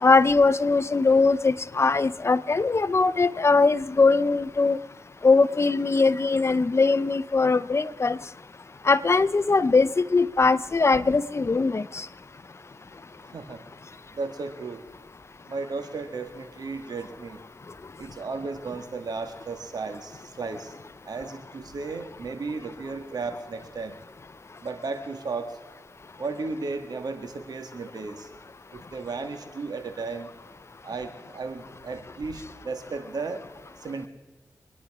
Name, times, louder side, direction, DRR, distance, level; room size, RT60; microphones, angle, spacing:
voice 1, 0.0-4.8 5.2-8.2 8.8-12.1, left 3 dB, 40° left, 16 dB, 0.6 m, -21 dB
voice 2, 14.1-14.8 15.5-17.4 18.0-20.7 21.1-24.0 24.6-25.6 26.2-28.3 28.7-30.3 30.8-33.4 33.8-34.1, right 4 dB, 70° right, 7 dB, 1.8 m, -34 dB
25.0 x 9.9 x 4.8 m, 1.2 s
cardioid pair, 50°, 7 cm